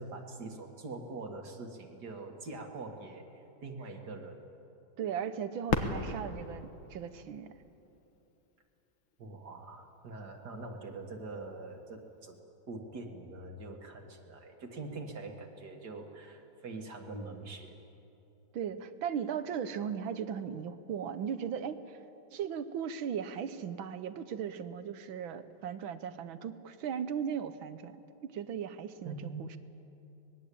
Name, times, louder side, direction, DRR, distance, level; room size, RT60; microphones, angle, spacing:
voice 1, 0.0-4.4 9.2-12.4 12.7-17.8 29.0-29.5, right 3 dB, 55° right, 3 dB, 2.4 m, -44 dB
voice 2, 5.0-7.5 18.5-22.0 22.3-28.0 28.2-29.6, right 8 dB, 75° right, 12 dB, 1.8 m, -37 dB
Fireworks, 5.7-8.4 9.1-9.2 9.9-10.4 12.3-12.4, left 5 dB, 80° left, 2.2 m, -36 dB
24.5 x 20.0 x 8.5 m, 2.9 s
omnidirectional pair, 2.2 m